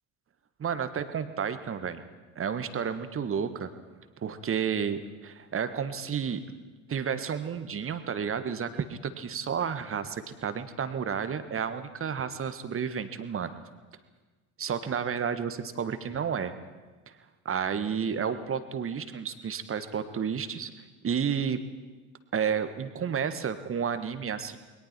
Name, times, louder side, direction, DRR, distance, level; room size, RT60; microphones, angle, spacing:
voice 1, 0.6-2.0 2.3-3.7 4.2-6.4 6.9-13.5 14.6-16.5 17.1-17.2 17.4-20.7 21.0-21.6 22.3-24.6, right 7 dB, 30° right, 11 dB, 1.6 m, -31 dB
29.5 x 21.5 x 4.5 m, 1.3 s
figure-of-eight pair, 60°, 44 cm